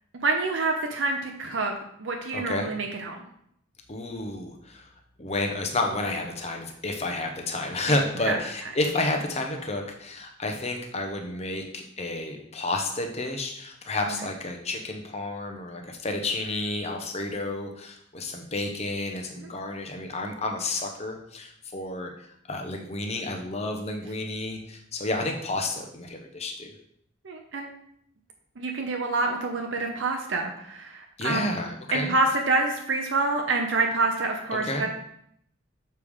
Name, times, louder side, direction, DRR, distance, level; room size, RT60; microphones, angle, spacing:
voice 1, 0.2-1.7 2.0-3.2 7.9-8.0 8.2-8.4 14.1-14.2 19.4-19.5 27.2-27.7 28.6-31.6 31.9-34.9, right 3 dB, 70° right, 2 dB, 0.7 m, -27 dB
voice 2, 2.3-2.7 3.9-4.9 5.2-26.7 31.2-32.1 34.6-34.9, left 2 dB, 35° left, 3 dB, 0.9 m, -31 dB
6.8 x 4.9 x 3.5 m, 0.71 s
head